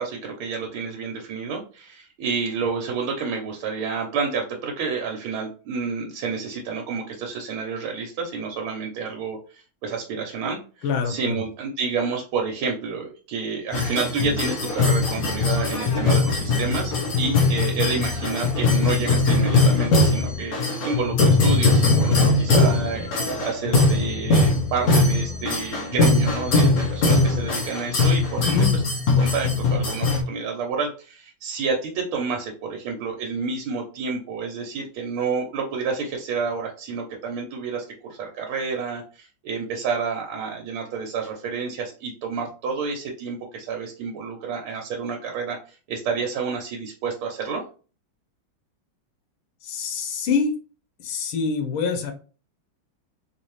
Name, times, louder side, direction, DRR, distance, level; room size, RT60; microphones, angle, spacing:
voice 1, 0.0-20.6 20.8-28.7 29.2-47.6, right 5 dB, 85° right, 1 dB, 1.6 m, -29 dB
voice 2, 10.8-11.4 28.4-28.8 49.6-50.5 51.0-52.1, left 5 dB, 90° left, 6 dB, 1.6 m, -25 dB
sound 1, 13.7-30.2, left 3 dB, 50° left, 1.4 m, -21 dB
4.2 x 2.8 x 3.1 m, 0.37 s
omnidirectional pair, 2.2 m